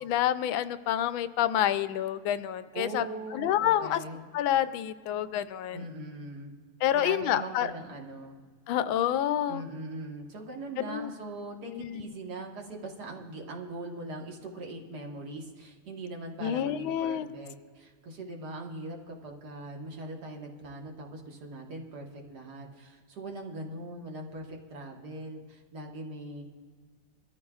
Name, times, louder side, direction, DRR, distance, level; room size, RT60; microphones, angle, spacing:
voice 1, 0.0-3.0 3.3-4.0 4.3-5.9 6.8-7.7 8.7-9.6 10.9-11.1 11.8-12.1 16.4-17.3, left 11 dB, 90° left, 12 dB, 1.4 m, -28 dB
voice 2, 2.7-4.2 5.7-6.5 6.9-8.4 9.5-26.4, right 2 dB, 55° right, 1 dB, 1.9 m, -41 dB
23.0 x 13.5 x 2.4 m, 1.6 s
omnidirectional pair, 2.1 m